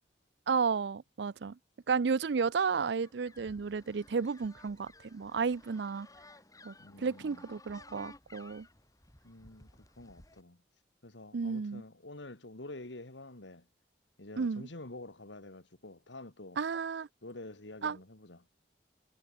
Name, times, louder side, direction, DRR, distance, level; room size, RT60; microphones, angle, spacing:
voice 1, 0.5-1.6 1.9-6.1 6.6-8.7 11.3-11.8 14.4-14.6 16.6-17.1 17.8-18.0, right 5 dB, 65° right, 0.5 m, -32 dB
sound 1, 3.0-10.4, left 2 dB, 20° left, 3.7 m, -56 dB
voice 2, 6.8-7.5 9.2-10.6 11.0-13.7 14.2-16.6 17.2-18.5, left 2 dB, 80° left, 2.4 m, -48 dB
head